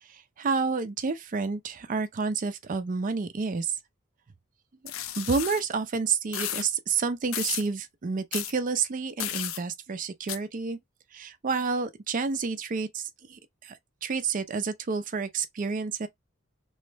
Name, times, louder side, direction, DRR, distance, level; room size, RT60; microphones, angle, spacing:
voice 1, 0.1-3.8 4.8-10.8 11.1-16.1, right 5 dB, 40° right, 0.4 m, -30 dB
sound 1, 4.9-5.6 6.3-6.7 7.3-7.7 8.3-8.5 9.2-9.6 10.3-10.4, left 11 dB, 75° left, 0.4 m, -33 dB
3.1 x 2.0 x 3.2 m
head